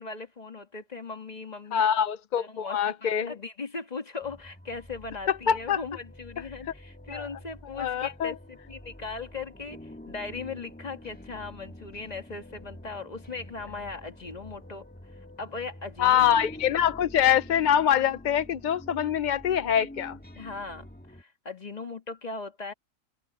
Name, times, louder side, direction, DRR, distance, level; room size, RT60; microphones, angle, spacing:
voice 1, 0.0-1.8 2.4-14.9 15.4-16.3 20.4-22.7, left 4 dB, 30° left, 1.8 m, -39 dB
voice 2, 1.7-3.4 5.3-5.8 7.1-7.3 7.6-8.3 16.0-20.2, left 9 dB, 55° left, 0.5 m, -24 dB
sound 1, 4.2-21.2, left 1 dB, 5° left, 1.7 m, -47 dB
omnidirectional pair, 1.4 m